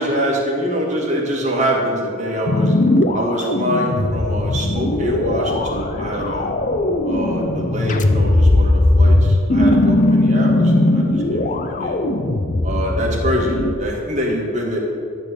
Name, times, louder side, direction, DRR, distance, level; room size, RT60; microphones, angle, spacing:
voice 1, 0.0-2.7 3.1-6.5 7.0-12.0 12.6-14.8, equal, 35° right, -2 dB, 2.0 m, -24 dB
sound 1, 2.5-13.7, left 1 dB, 40° left, 0.6 m, -18 dB
12.0 x 4.3 x 8.2 m, 2.6 s
head